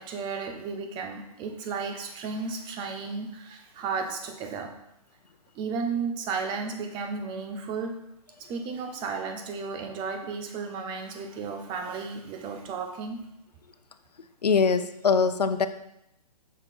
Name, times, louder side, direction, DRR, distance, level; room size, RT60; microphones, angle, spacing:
voice 1, 0.0-4.7 5.5-8.0 8.4-13.2, right 5 dB, 25° right, 5 dB, 1.0 m, -34 dB
voice 2, 14.4-15.7, left 5 dB, 85° left, 10 dB, 0.7 m, -22 dB
6.4 x 6.2 x 4.5 m, 0.81 s
hypercardioid pair, 130°, 20 cm